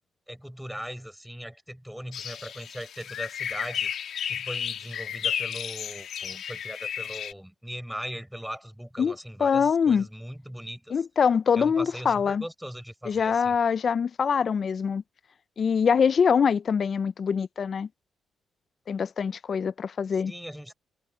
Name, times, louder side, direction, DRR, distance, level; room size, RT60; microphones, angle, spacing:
voice 1, 0.3-3.9 4.3-11.0 11.6-13.5 20.1-20.7, equal, 5° right, 6.0 m, -39 dB
sound 1, 2.1-7.3, left 9 dB, 70° left, 1.4 m, -33 dB
voice 2, 9.0-10.1 10.9-12.4 13.1-15.0 15.6-17.9 18.9-20.3, left 6 dB, 55° left, 0.4 m, -24 dB
cardioid pair, 70°, 0 cm